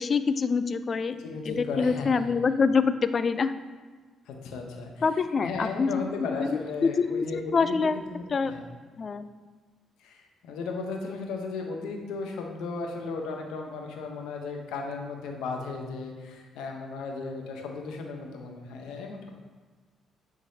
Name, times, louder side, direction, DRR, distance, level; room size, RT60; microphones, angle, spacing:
voice 1, 0.0-1.1 1.6-3.5 5.0-8.0 8.3-8.5 9.0-9.3, left 5 dB, 40° left, 12 dB, 0.3 m, -26 dB
voice 2, 1.2-2.3 4.3-4.9 5.4-7.8 8.1-8.6 10.0-19.3, left 4 dB, 90° left, 2 dB, 0.8 m, -35 dB
9.3 x 3.9 x 2.7 m, 1.4 s
cardioid pair, 90°, 0 cm